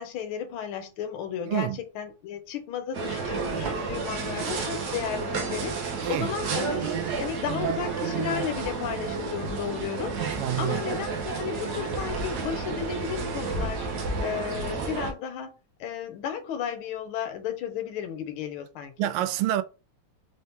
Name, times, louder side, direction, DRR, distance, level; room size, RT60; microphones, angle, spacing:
voice 1, 0.0-1.7 1.9-5.7 6.1-10.2 10.6-13.8 14.2-15.5 15.8-18.9, left 8 dB, 75° left, 1.6 m, -33 dB
voice 2, 1.4-1.8 6.0-6.3 10.4-10.8 19.0-19.6, right 13 dB, 85° right, 1.5 m, -27 dB
sound 1, 2.9-15.1, right 4 dB, 55° right, 1.3 m, -31 dB
4.4 x 2.8 x 3.5 m
omnidirectional pair, 2.4 m